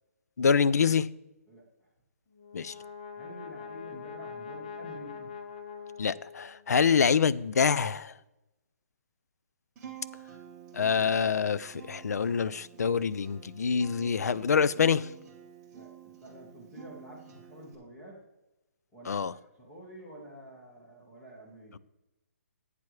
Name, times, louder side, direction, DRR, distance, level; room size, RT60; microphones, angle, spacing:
voice 1, 0.4-1.1 2.5-2.7 6.0-8.1 10.7-15.1 19.1-19.3, left 6 dB, 85° left, 0.4 m, -26 dB
Brass instrument, 2.3-6.7, left 6 dB, 35° left, 0.8 m, -43 dB
voice 2, 3.2-5.3 15.7-15.9 16.2-18.2 18.9-21.7, equal, 10° left, 1.4 m, -48 dB
Acoustic guitar, 9.8-17.7, right 9 dB, 10° right, 1.1 m, -49 dB
12.0 x 8.3 x 3.2 m
hypercardioid pair, 175°, 9 cm